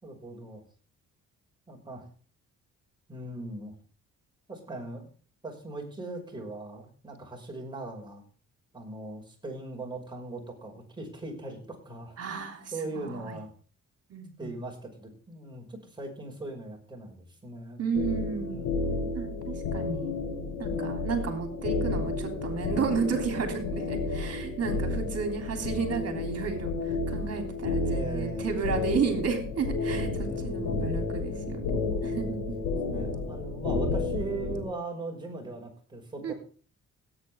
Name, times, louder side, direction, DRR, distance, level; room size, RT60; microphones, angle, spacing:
voice 1, 0.0-0.6 1.7-2.0 3.1-3.8 4.5-5.1 5.4-8.2 8.7-12.4 12.7-13.5 14.4-17.8 18.5-19.2 24.7-25.1 27.8-28.5 30.1-30.8 32.1-32.4 32.8-36.3, right 2 dB, 15° right, -1 dB, 5.7 m, -39 dB
voice 2, 12.2-13.4 14.1-14.5 17.8-18.6 19.1-20.1 20.6-32.5 36.2-36.3, right 5 dB, 55° right, 5 dB, 3.3 m, -32 dB
sound 1, 17.9-34.6, left 3 dB, 90° left, 5.0 m, -31 dB
17.5 x 9.0 x 3.6 m, 0.40 s
cardioid pair, 90°, 30 cm